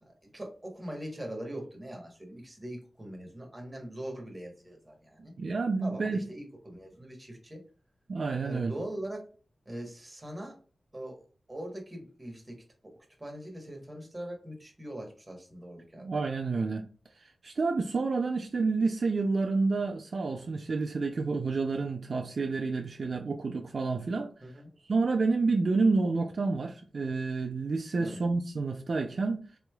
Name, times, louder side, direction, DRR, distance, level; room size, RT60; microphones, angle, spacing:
voice 1, 0.0-5.3 5.8-7.6 8.4-9.2 9.6-10.6 10.9-11.2 11.5-12.6 13.2-16.1 24.4-24.7 28.0-28.2, right 1 dB, 15° right, 1.0 m, -41 dB
voice 2, 5.4-6.2 8.1-8.7 16.0-16.8 17.1-24.3 24.8-29.4, right 3 dB, 50° right, 0.3 m, -29 dB
3.8 x 3.1 x 2.2 m
wide cardioid pair, 155°, 0 cm